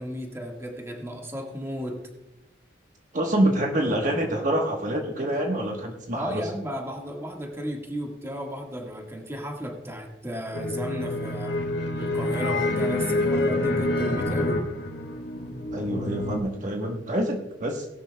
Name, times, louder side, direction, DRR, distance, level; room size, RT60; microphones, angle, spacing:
voice 1, 0.0-2.0 6.1-11.6 12.0-14.6, equal, 15° right, 1 dB, 1.6 m, -34 dB
voice 2, 3.1-6.5 15.7-17.9, right 1 dB, 45° right, 1 dB, 1.2 m, -26 dB
sound 1, 10.5-16.4, left 2 dB, 75° left, 2.1 m, -27 dB
18.5 x 11.5 x 2.3 m, 0.96 s
head